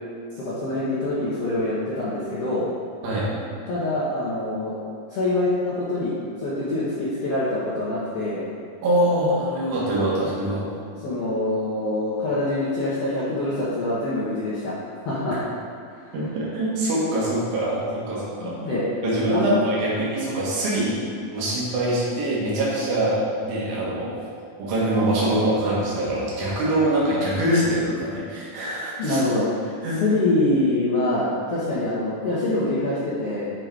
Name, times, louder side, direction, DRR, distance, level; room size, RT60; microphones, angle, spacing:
voice 1, 0.4-2.7 3.7-4.8 5.1-8.4 10.6-10.7 11.0-14.7 15.0-15.4 18.4-18.8 19.3-19.7 29.0-29.4 30.0-33.4, left 2 dB, 70° left, -9 dB, 1.4 m, -25 dB
voice 2, 8.8-10.6 15.3-15.4 16.1-18.5 19.0-21.1 21.3-24.2 24.6-29.2 29.8-30.0, right 1 dB, 70° right, -6 dB, 3.2 m, -24 dB
8.3 x 3.9 x 4.7 m, 2.3 s
omnidirectional pair, 4.5 m